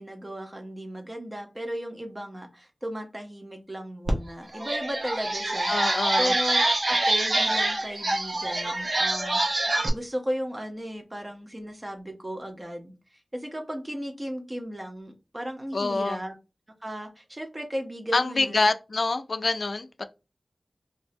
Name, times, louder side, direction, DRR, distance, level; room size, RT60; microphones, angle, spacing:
voice 1, 0.0-9.4 9.9-12.9 13.3-16.3 16.8-18.7, equal, 25° right, 0.9 m, -35 dB
sound 1, 4.1-4.2 4.5-9.9, right 2 dB, 65° right, 0.8 m, -25 dB
voice 2, 5.7-6.3 15.7-16.2 18.1-20.0, left 3 dB, 65° left, 0.3 m, -26 dB
3.2 x 2.6 x 2.5 m
wide cardioid pair, 85°, 0 cm